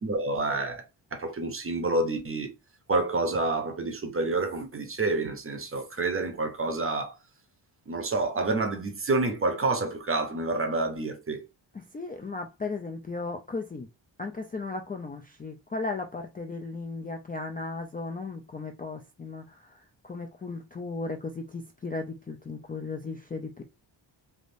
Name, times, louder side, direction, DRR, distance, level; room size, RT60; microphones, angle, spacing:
voice 1, 0.0-2.5 2.9-7.2 7.9-11.5, right 2 dB, 30° right, 0.6 m, -28 dB
voice 2, 11.7-13.9 14.2-19.7 20.0-23.6, left 3 dB, 20° left, 0.3 m, -36 dB
3.4 x 2.5 x 2.5 m
wide cardioid pair, 110°, 47 cm